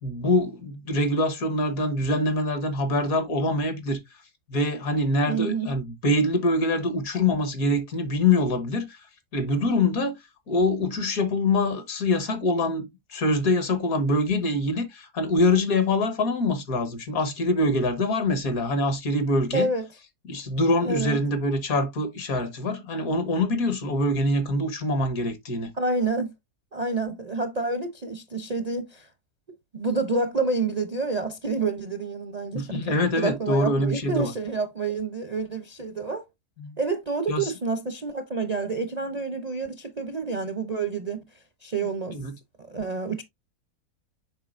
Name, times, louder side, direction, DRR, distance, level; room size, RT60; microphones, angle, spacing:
voice 1, 0.0-4.0 4.5-9.1 9.3-10.2 10.5-19.7 20.3-25.7 32.5-34.3 36.6-36.8 37.3-37.5 42.1-42.3, left 2 dB, 60° left, 1.7 m, -24 dB
voice 2, 5.3-5.7 19.5-19.9 20.8-21.2 25.8-26.3 26.7-29.1 29.7-36.3 36.8-41.2 41.6-42.2 42.7-43.2, right 3 dB, 40° right, 0.6 m, -28 dB
7.5 x 5.6 x 2.5 m
omnidirectional pair, 1.7 m